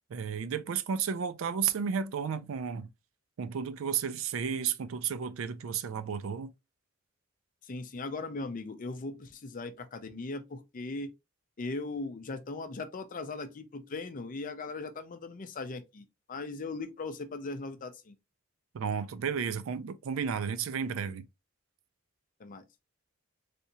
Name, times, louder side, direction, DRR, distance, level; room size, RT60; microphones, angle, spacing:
voice 1, 0.1-2.9 3.4-6.5 18.7-21.3, right 7 dB, 70° right, 0.4 m, -33 dB
voice 2, 7.6-11.1 11.6-18.1 22.4-22.6, left 3 dB, 40° left, 0.5 m, -39 dB
3.4 x 2.7 x 2.7 m
head